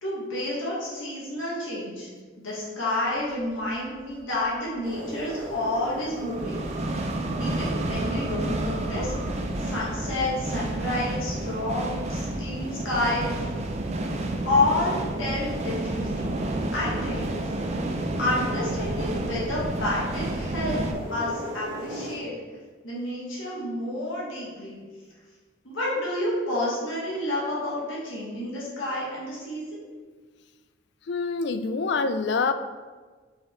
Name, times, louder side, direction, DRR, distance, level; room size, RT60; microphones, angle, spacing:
voice 1, 0.0-2.1 2.4-6.6 7.4-9.1 9.6-13.2 14.4-17.3 17.7-17.8 18.2-20.8 21.1-22.3 22.8-24.8 25.6-29.8, left 1 dB, 90° left, -6 dB, 1.6 m, -29 dB
sound 1, 3.5-3.6 5.1-20.9, right 1 dB, 35° right, 0.5 m, -30 dB
sound 2, 4.8-22.2, equal, 65° right, 1.8 m, -41 dB
voice 2, 31.1-32.5, left 4 dB, 60° left, 10 dB, 0.3 m, -26 dB
5.6 x 4.0 x 4.3 m, 1.4 s
head